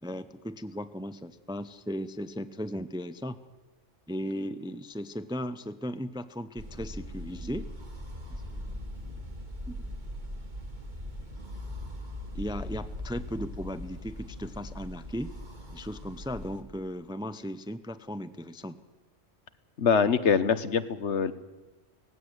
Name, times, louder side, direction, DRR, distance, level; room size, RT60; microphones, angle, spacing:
voice 1, 0.0-3.4 4.1-7.7 8.5-9.1 9.7-10.0 12.3-15.3 15.7-18.8, equal, 5° right, 12 dB, 0.6 m, -37 dB
sound 1, 6.6-16.6, equal, 40° right, 2.4 m, -40 dB
voice 2, 19.8-21.3, left 6 dB, 65° left, 13 dB, 1.3 m, -24 dB
18.5 x 16.0 x 9.6 m, 1.1 s
omnidirectional pair, 1.3 m